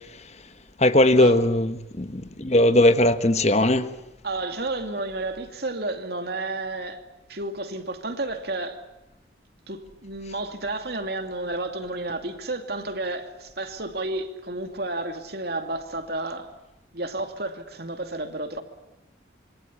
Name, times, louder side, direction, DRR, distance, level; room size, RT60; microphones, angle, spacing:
voice 1, 0.8-3.9, left 1 dB, 35° left, 1.2 m, -19 dB
voice 2, 4.2-7.0 7.3-8.8 9.7-16.5 16.9-18.6, right 2 dB, 60° right, 2.5 m, -31 dB
26.5 x 24.5 x 8.5 m
head